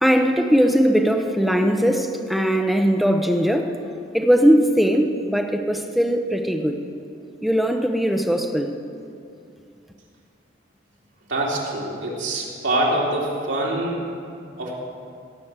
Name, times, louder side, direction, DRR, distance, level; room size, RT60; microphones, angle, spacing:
voice 1, 0.0-3.8 4.1-6.8 7.4-8.7, equal, ahead, 4 dB, 0.7 m, -19 dB
voice 2, 11.3-14.0 14.6-14.7, right 1 dB, 80° right, -4 dB, 3.0 m, -24 dB
16.5 x 6.1 x 8.1 m, 2.4 s
head